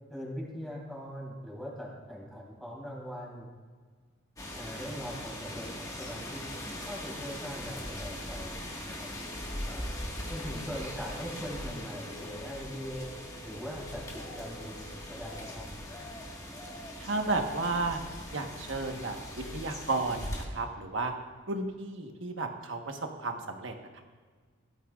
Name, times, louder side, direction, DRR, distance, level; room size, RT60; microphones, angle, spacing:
voice 1, 0.1-3.5 4.5-6.4 6.9-8.6 8.9-9.1 9.6-9.9 10.3-13.1 13.4-15.7, equal, ahead, -5 dB, 3.4 m, -41 dB
sound 1, 4.4-20.5, left 1 dB, 15° left, 1.7 m, -40 dB
sound 2, 9.2-15.4, equal, 80° left, 1.7 m, -51 dB
voice 2, 17.0-18.0 18.3-21.1 21.5-24.0, right 3 dB, 70° right, 4 dB, 1.3 m, -33 dB
17.0 x 13.0 x 2.5 m, 1.5 s
head